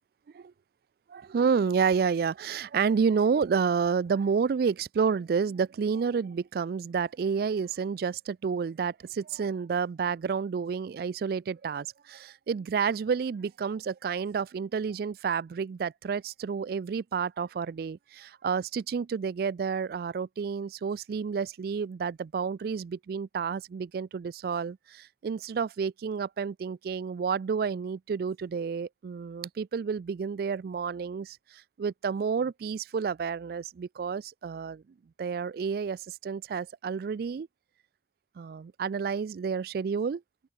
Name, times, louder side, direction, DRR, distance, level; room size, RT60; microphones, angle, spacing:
voice 1, 1.1-34.8 35.2-37.5 38.4-40.2, right 6 dB, 55° right, 0.3 m, -30 dB
open air
head